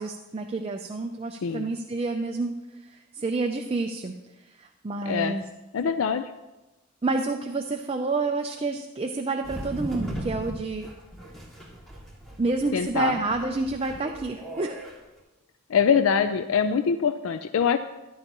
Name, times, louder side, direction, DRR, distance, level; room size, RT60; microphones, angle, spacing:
voice 1, 0.0-2.6 2.8-4.2 4.6-5.4 7.0-10.9 12.4-14.8, right 3 dB, 30° right, 4 dB, 0.5 m, -29 dB
voice 2, 5.7-6.2 12.7-13.2 15.7-17.8, left 6 dB, 85° left, 10 dB, 0.4 m, -23 dB
sound 1, 9.4-14.9, equal, ahead, 2.2 m, -38 dB
14.5 x 11.0 x 2.9 m, 1.1 s
head